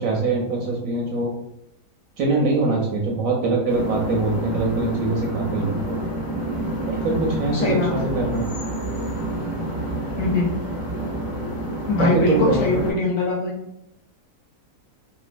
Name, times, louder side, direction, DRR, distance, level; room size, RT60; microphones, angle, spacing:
voice 1, 0.0-1.3 2.2-6.0 6.9-8.5 12.0-12.7, right 3 dB, 70° right, -1 dB, 0.8 m, -23 dB
sound 1, 3.7-12.9, right 1 dB, 15° left, 0.6 m, -28 dB
voice 2, 7.5-8.0 10.2-10.4 11.9-13.5, left 2 dB, 65° left, -3 dB, 1.0 m, -22 dB
2.9 x 2.1 x 2.4 m, 0.80 s
omnidirectional pair, 1.7 m